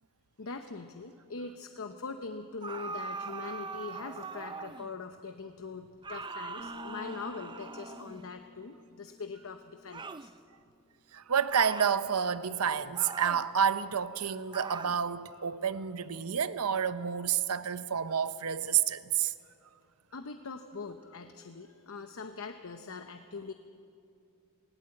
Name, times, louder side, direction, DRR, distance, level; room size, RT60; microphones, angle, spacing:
voice 1, 0.4-10.3 20.1-23.5, left 4 dB, 65° left, 0.8 m, -42 dB
sound 1, 2.6-4.9 6.0-8.3 9.9-10.3 11.5-12.0 12.9-13.5 14.5-15.0, right 4 dB, 20° right, 0.4 m, -41 dB
sound 2, 6.6-10.3, left 4 dB, 20° left, 1.8 m, -50 dB
voice 2, 11.1-19.3, right 7 dB, 90° right, 0.7 m, -29 dB
19.0 x 18.5 x 7.8 m
head